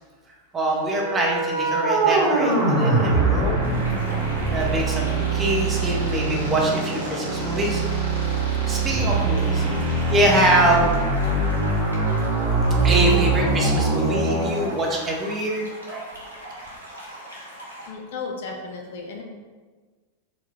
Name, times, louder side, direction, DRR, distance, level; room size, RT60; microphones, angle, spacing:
voice 1, 0.5-3.7 4.5-7.9 8.7-9.6 10.1-10.9 12.8-16.0 16.4-16.5, right 1 dB, 20° right, -2 dB, 0.8 m, -24 dB
sound 1, 0.8-14.7, right 3 dB, 65° right, 1.2 m, -23 dB
sound 2, 3.6-17.9, equal, 85° right, 0.9 m, -41 dB
voice 2, 17.9-19.2, left 4 dB, 55° left, 2 dB, 0.5 m, -34 dB
4.4 x 2.3 x 3.6 m, 1.4 s
figure-of-eight pair, 90°, 0 cm